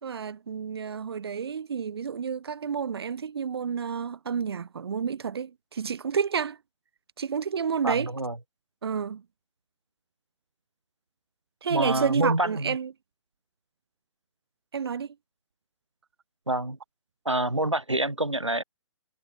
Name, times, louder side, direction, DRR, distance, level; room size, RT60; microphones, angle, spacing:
voice 1, 0.0-6.6 7.2-8.1 8.8-9.2 11.6-12.9 14.7-15.1, right 7 dB, 55° right, 4.5 m, -30 dB
voice 2, 7.8-8.4 11.7-12.8 16.5-16.8 17.3-18.6, right 1 dB, 85° right, 5.7 m, -27 dB
figure-of-eight pair, 130°, 15 cm